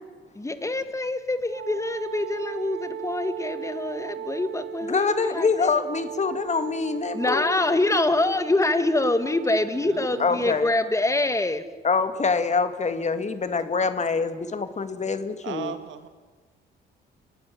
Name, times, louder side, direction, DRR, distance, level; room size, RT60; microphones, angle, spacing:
voice 1, 0.3-5.7 7.1-11.7, left 2 dB, 15° left, 11 dB, 1.9 m, -25 dB
Wind instrument woodwind instrument, 1.5-11.5, right 9 dB, 60° right, 1.1 m, -38 dB
voice 2, 4.9-7.6 10.2-10.7 11.8-15.7, left 4 dB, 35° left, 11 dB, 1.9 m, -25 dB
voice 3, 9.7-10.6 15.4-16.1, right 9 dB, 75° right, 9 dB, 2.3 m, -37 dB
30.0 x 12.5 x 10.0 m, 1.4 s
cardioid pair, 90°, 20 cm